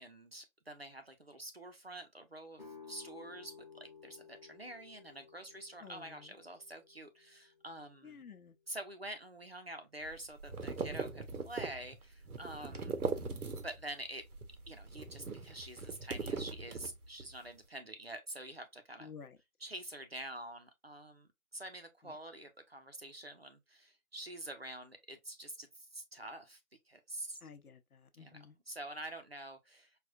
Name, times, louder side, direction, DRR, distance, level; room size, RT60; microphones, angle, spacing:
voice 1, 0.0-8.2 8.7-13.0 13.6-14.3 14.7-19.1 19.6-26.6 26.9-27.4 28.2-30.0, right 1 dB, 45° right, 0.6 m, -47 dB
sound 1, 2.6-8.3, left 5 dB, 30° left, 1.0 m, -56 dB
voice 2, 5.8-6.3 8.0-8.5 12.9-13.2 19.0-19.4 22.0-22.1 27.4-28.6, left 6 dB, 85° left, 0.8 m, -53 dB
sound 2, 10.0-13.9 14.2-17.3, right 4 dB, 80° right, 0.9 m, -40 dB
4.9 x 2.3 x 2.3 m
figure-of-eight pair, 180°, 43 cm